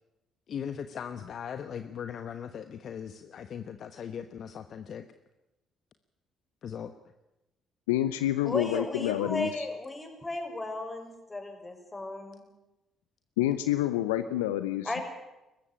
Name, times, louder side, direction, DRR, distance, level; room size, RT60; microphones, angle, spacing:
voice 1, 0.5-5.0 6.6-6.9, left 8 dB, 55° left, 9 dB, 1.2 m, -39 dB
voice 2, 7.9-9.7 13.4-15.0, left 13 dB, 80° left, 12 dB, 0.8 m, -28 dB
voice 3, 8.4-12.4 14.8-15.0, left 2 dB, 20° left, 5 dB, 6.2 m, -35 dB
21.5 x 15.0 x 9.9 m, 0.96 s
hypercardioid pair, 50°, 0 cm